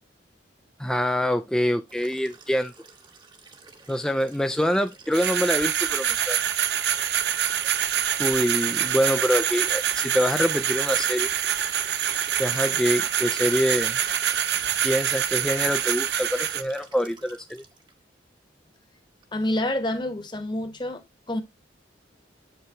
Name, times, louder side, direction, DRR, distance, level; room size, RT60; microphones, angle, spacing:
voice 1, 0.8-2.7 3.9-6.4 8.2-11.3 12.4-14.0 14.8-17.6, equal, 5° left, 0.3 m, -25 dB
Liquid, 1.9-17.9 19.2-19.3, right 3 dB, 25° right, 0.9 m, -48 dB
sound 1, 5.1-16.6, right 10 dB, 65° right, 0.6 m, -25 dB
voice 2, 19.3-21.4, left 1 dB, 25° left, 1.1 m, -28 dB
7.7 x 5.6 x 2.9 m
head